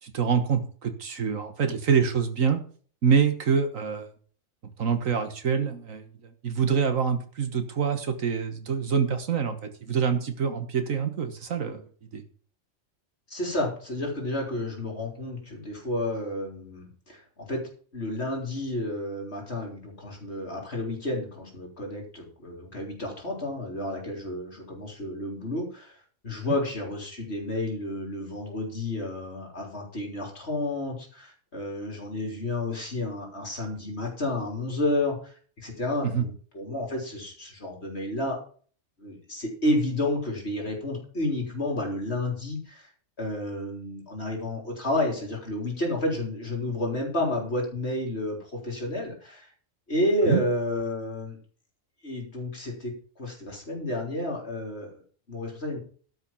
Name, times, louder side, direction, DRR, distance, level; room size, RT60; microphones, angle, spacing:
voice 1, 0.0-2.6 3.0-4.1 4.8-6.0 6.4-11.9 12.1-12.2 36.0-36.3 50.3-50.4, right 6 dB, 80° right, 8 dB, 1.7 m, -25 dB
voice 2, 13.3-26.0 26.2-38.4 39.0-42.9 43.2-49.5 49.9-51.4 52.0-55.0 55.3-55.8, left 1 dB, 50° left, 0 dB, 3.9 m, -31 dB
12.5 x 5.7 x 7.1 m, 0.43 s
omnidirectional pair, 1.4 m